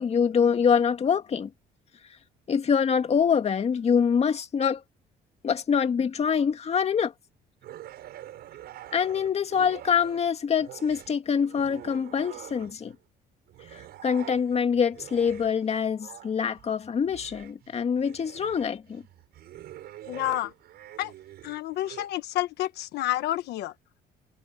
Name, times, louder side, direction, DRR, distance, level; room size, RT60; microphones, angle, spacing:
voice 1, 0.0-1.5 2.5-4.8 5.4-7.1 8.9-13.0 13.7-19.0, left 7 dB, 40° left, 2.2 m, -25 dB
sound 1, 7.6-10.3 10.6-13.0 13.5-22.1, right 13 dB, 70° right, 7.5 m, -46 dB
voice 2, 20.1-20.5 21.0-21.1 21.4-23.7, left 15 dB, 75° left, 1.2 m, -29 dB
cardioid pair, 110°, 17 cm